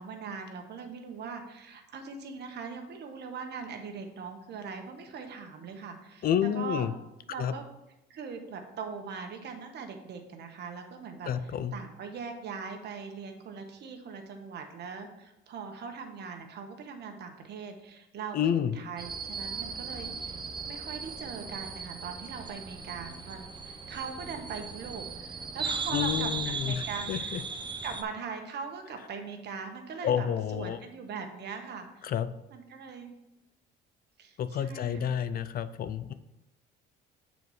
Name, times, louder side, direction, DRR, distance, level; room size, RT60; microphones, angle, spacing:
voice 1, 0.0-6.9 7.3-7.7 8.1-27.4 27.8-30.3 30.5-32.1 32.5-33.1 34.2-35.2, right 5 dB, 55° right, 4 dB, 1.2 m, -41 dB
voice 2, 6.2-6.9 7.4-7.5 11.3-11.7 18.3-18.7 25.9-27.4 30.0-30.8 32.0-32.3 34.4-36.1, left 9 dB, 45° left, 12 dB, 0.5 m, -29 dB
sound 1, 19.0-28.0, right 4 dB, 20° right, 0.7 m, -37 dB
6.9 x 4.1 x 4.8 m, 0.92 s
supercardioid pair, 90°, 21 cm